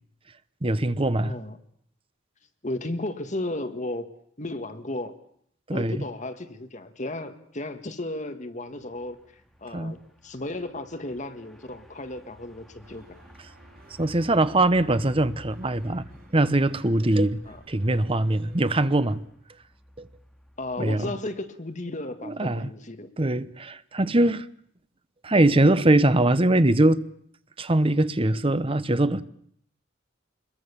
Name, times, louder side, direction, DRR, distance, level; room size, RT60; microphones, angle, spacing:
voice 1, 0.6-1.4 5.7-6.0 9.7-10.0 14.0-16.0 16.3-19.2 20.0-20.1 20.8-21.1 22.3-22.7 23.2-24.5 25.2-27.0 27.6-29.2, right 1 dB, 30° right, 0.9 m, -22 dB
voice 2, 1.2-1.6 2.6-4.1 4.4-5.2 5.7-9.2 9.6-13.2 17.5-17.6 20.6-23.1, left 2 dB, 40° left, 1.7 m, -34 dB
sound 1, 8.7-21.1, equal, ahead, 2.4 m, -53 dB
sound 2, 12.8-19.2, right 1 dB, 50° right, 3.8 m, -54 dB
25.5 x 22.0 x 7.1 m
head